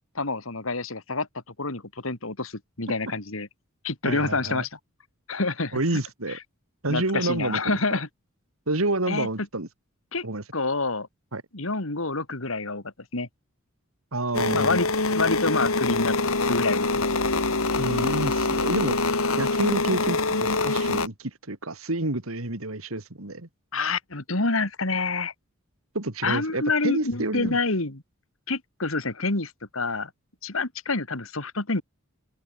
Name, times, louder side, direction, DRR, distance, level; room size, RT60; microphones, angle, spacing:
voice 1, 0.1-1.3 1.6-3.5 3.8-4.8 5.3-5.8 6.3-6.4 6.9-8.1 9.1-9.3 10.1-10.2 10.5-11.1 11.5-12.8 13.1-13.3 14.5-14.9 15.1-16.2 16.5-17.1 23.7-25.3 26.2-28.0 28.5-30.1 30.4-31.8, left 3 dB, 70° left, 2.8 m, -27 dB
voice 2, 4.0-4.6 5.7-6.4 6.8-8.0 8.7-9.7 10.2-10.4 11.3-11.4 14.1-14.8 17.8-19.0 19.4-23.5 25.9-27.6, right 2 dB, 80° right, 2.8 m, -29 dB
sound 1, 14.3-21.1, left 3 dB, 85° left, 3.5 m, -24 dB
open air
head